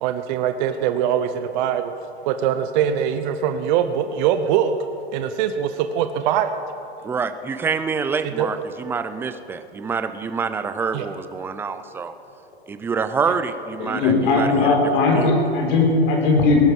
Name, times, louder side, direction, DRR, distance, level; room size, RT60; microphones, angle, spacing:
voice 1, 0.0-1.9 2.3-4.8 5.1-6.5 8.4-8.5 10.9-11.1, right 9 dB, 45° right, 9 dB, 0.8 m, -22 dB
voice 2, 7.0-12.1 12.7-14.7 15.1-15.3, right 5 dB, 5° right, 11 dB, 0.4 m, -26 dB
voice 3, 13.8-16.7, left 3 dB, 50° left, 0 dB, 4.4 m, -18 dB
19.0 x 11.0 x 5.4 m, 2.8 s
hypercardioid pair, 115°, 32 cm